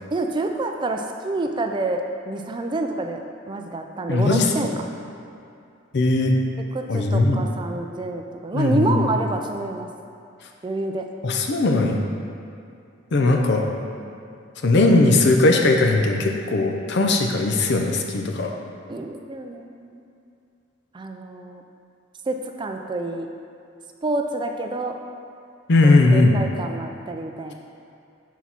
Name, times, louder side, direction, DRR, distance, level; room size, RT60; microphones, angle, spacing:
voice 1, 0.1-4.7 6.7-9.9 10.6-11.0 13.9-14.1 18.9-20.0 20.9-21.6 22.3-23.3 24.0-25.0 25.8-27.5, right 2 dB, 25° right, 4 dB, 0.3 m, -28 dB
voice 2, 4.1-4.5 5.9-6.4 6.9-7.4 8.5-9.0 11.2-12.0 13.1-13.6 14.6-18.5 25.7-26.4, left 2 dB, 60° left, 2 dB, 0.6 m, -18 dB
6.2 x 4.1 x 4.4 m, 2.5 s
head